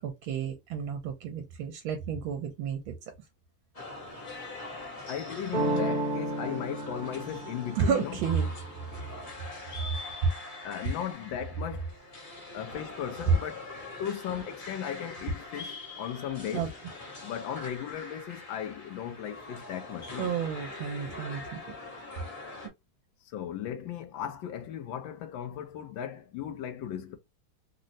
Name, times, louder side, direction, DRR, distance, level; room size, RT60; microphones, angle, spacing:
voice 1, 0.0-2.9 7.8-8.5 16.5-16.7 20.2-21.4, right 7 dB, 85° right, 1.4 m, -31 dB
sound 1, 3.7-22.7, left 2 dB, 40° left, 0.5 m, -44 dB
voice 2, 5.1-8.2 10.6-11.9 12.5-16.7 17.2-20.4 23.2-27.2, left 9 dB, 75° left, 1.3 m, -37 dB
sound 2, 5.5-11.1, right 1 dB, 40° right, 1.2 m, -35 dB
3.8 x 2.0 x 2.6 m
omnidirectional pair, 2.3 m